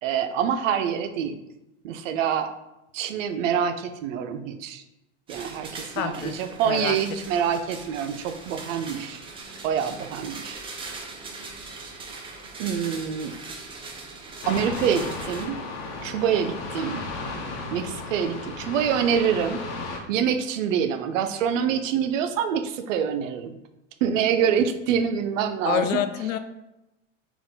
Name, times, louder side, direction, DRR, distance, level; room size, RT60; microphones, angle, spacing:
voice 1, 0.0-1.4 1.8-2.5 2.9-4.8 5.3-9.2 9.6-10.6 12.6-13.3 14.5-15.6 16.0-17.0 17.7-19.6 20.1-23.6 24.0-26.0, right 8 dB, 75° right, 9 dB, 0.5 m, -26 dB
sound 1, 5.3-15.5, right 3 dB, 15° right, 0.4 m, -40 dB
voice 2, 6.0-6.3 6.6-7.0 25.6-26.4, left 10 dB, 90° left, 10 dB, 0.5 m, -26 dB
sound 2, 14.4-20.0, left 3 dB, 50° left, 0.9 m, -34 dB
3.7 x 2.5 x 3.7 m, 0.94 s
hypercardioid pair, 110°, 38 cm